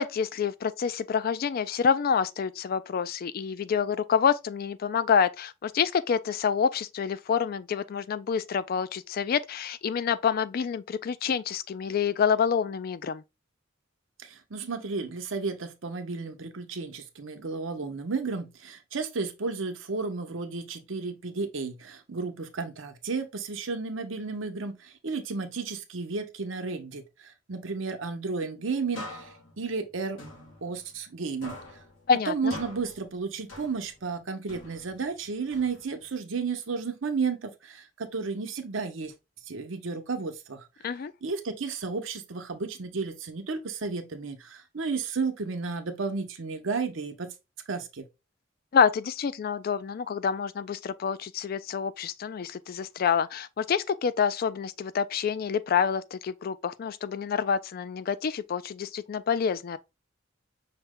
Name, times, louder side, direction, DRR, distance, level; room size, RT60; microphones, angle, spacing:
voice 1, 0.0-13.2 32.1-32.5 40.8-41.1 48.7-59.8, left 6 dB, 50° left, 0.3 m, -27 dB
voice 2, 14.2-29.3 29.6-30.2 30.6-31.6 32.3-39.1 39.5-40.7 41.2-47.3 47.7-48.0, right 4 dB, 85° right, 0.8 m, -33 dB
sound 1, 28.9-31.2 31.4-34.1 34.5-36.1, left 1 dB, 85° left, 1.2 m, -45 dB
5.7 x 2.2 x 3.6 m
head